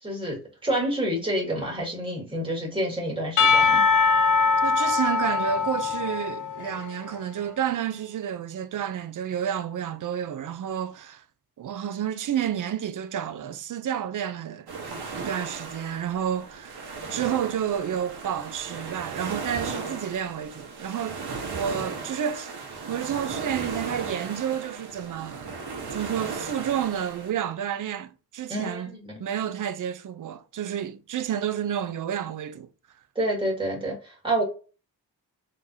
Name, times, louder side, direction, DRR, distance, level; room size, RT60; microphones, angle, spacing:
voice 1, 0.0-3.8 28.5-29.2 33.2-34.4, right 1 dB, 15° right, 2.0 m, -28 dB
Percussion / Church bell, 3.4-7.0, left 5 dB, 50° left, 0.6 m, -22 dB
voice 2, 4.6-11.2 11.6-14.7 15.1-16.8 17.1-21.2 21.5-22.5 22.9-25.5 25.9-28.9 29.2-32.7, right 9 dB, 55° right, 0.5 m, -30 dB
sound 1, 14.7-27.3, right 4 dB, 75° right, 1.2 m, -36 dB
3.7 x 3.2 x 2.6 m
cardioid pair, 85°, 39 cm